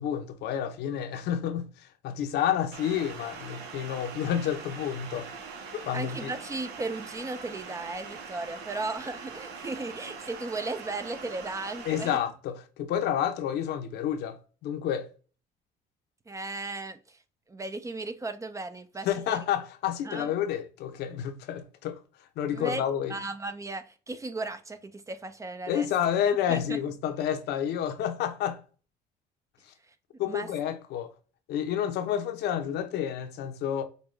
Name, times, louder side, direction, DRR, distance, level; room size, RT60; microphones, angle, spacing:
voice 1, 0.0-5.3 5.8-6.3 11.8-15.1 19.0-22.0 22.4-23.1 25.7-28.6 30.2-31.1 31.5-33.8, left 9 dB, 75° left, 0.7 m, -30 dB
sound 1, 2.7-12.2, right 5 dB, 85° right, 0.9 m, -42 dB
voice 2, 5.9-12.1 16.3-17.2 17.5-19.4 20.0-20.3 22.5-22.8 23.1-25.9 26.5-26.8 30.3-30.5, right 2 dB, 20° right, 0.4 m, -36 dB
5.3 x 2.3 x 3.2 m
cardioid pair, 110°, 17 cm